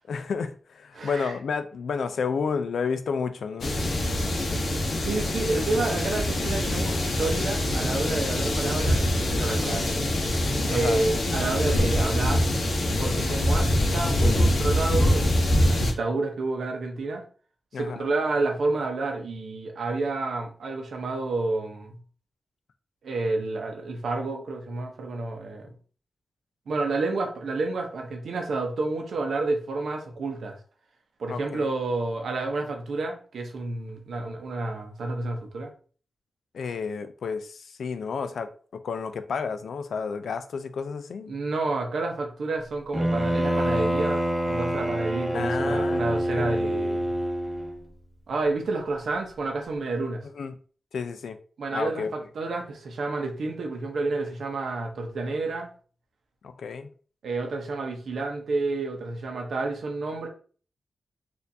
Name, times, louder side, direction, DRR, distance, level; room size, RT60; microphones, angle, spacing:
voice 1, 0.1-3.8 10.7-11.0 17.7-18.0 31.3-31.7 36.5-41.3 45.3-46.7 50.4-50.5 50.9-51.4 51.7-52.1 56.4-56.9, left 5 dB, 90° left, 0.4 m, -31 dB
voice 2, 0.9-1.3 4.7-10.1 10.7-12.4 13.0-17.2 17.8-22.0 23.0-25.7 26.7-30.6 31.2-35.7 41.3-47.1 48.3-50.2 51.6-55.7 57.2-60.3, right 3 dB, 85° right, 0.7 m, -30 dB
sound 1, 3.6-15.9, left 1 dB, 70° left, 0.8 m, -24 dB
Bowed string instrument, 42.9-47.8, right 1 dB, 5° right, 0.8 m, -26 dB
4.3 x 2.5 x 2.7 m
wide cardioid pair, 80°, 0 cm